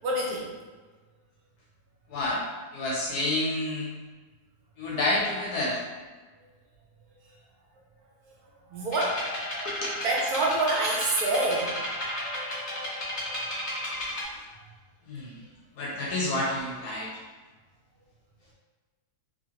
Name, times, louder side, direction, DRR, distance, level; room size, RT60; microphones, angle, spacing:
voice 1, 0.0-0.5 7.2-7.3 8.3-8.4 8.7-9.3 10.0-11.8 14.5-14.6, right 2 dB, 70° right, -2 dB, 1.1 m, -27 dB
voice 2, 2.1-2.4 2.7-3.9 4.8-5.8 9.6-9.9 14.3-14.4 15.1-15.4 15.8-17.1, left 2 dB, 75° left, -4 dB, 1.0 m, -29 dB
sound 1, 8.9-14.2, left 1 dB, 40° left, 0.7 m, -33 dB
2.8 x 2.6 x 2.8 m, 1.4 s
omnidirectional pair, 1.8 m